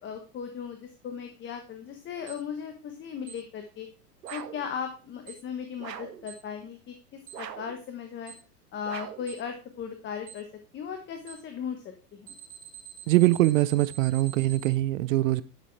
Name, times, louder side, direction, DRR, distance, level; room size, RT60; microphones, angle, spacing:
voice 1, 0.0-3.9 4.3-8.3 8.7-10.5 10.7-11.8 12.1-12.3, left 7 dB, 25° left, 1.2 m, -37 dB
Alarm, 2.3-2.4 3.3-3.4 4.3-4.4 5.3-5.4 6.3-6.4 7.3-7.4 8.3-8.4 9.3-9.4 10.3-10.4 11.3-11.4 12.3-14.7, right 10 dB, 30° right, 3.7 m, -45 dB
sound 1, 4.2-4.7 5.8-6.3 7.3-7.8 8.8-9.3, right 10 dB, 85° right, 1.0 m, -41 dB
voice 2, 13.1-15.4, right 17 dB, 55° right, 0.7 m, -23 dB
11.0 x 6.7 x 3.3 m
hypercardioid pair, 115°, 48 cm